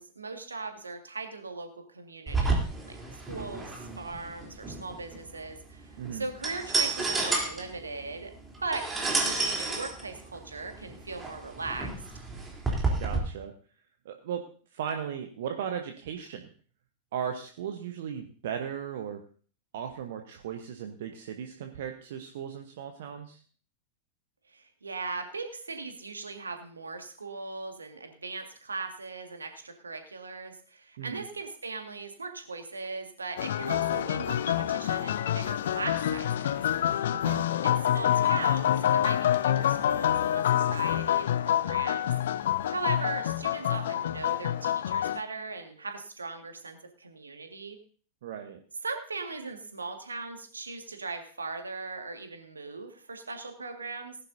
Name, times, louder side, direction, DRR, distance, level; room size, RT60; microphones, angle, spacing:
voice 1, 0.0-2.6 2.9-8.3 8.6-11.9 24.5-36.6 37.6-47.8 48.8-54.2, right 3 dB, 75° right, 5 dB, 2.0 m, -39 dB
sound 1, 2.3-13.2, right 3 dB, 10° right, 3.5 m, -31 dB
voice 2, 6.0-6.3 13.0-13.5 14.0-14.4 14.7-16.5 17.1-19.2 19.7-23.4 31.0-31.3 37.1-37.5 48.2-48.6, right 8 dB, 55° right, 5 dB, 1.1 m, -36 dB
sound 2, 33.4-45.2, left 11 dB, 60° left, 0.5 m, -27 dB
18.5 x 11.0 x 2.7 m, 0.42 s
figure-of-eight pair, 90°, 0 cm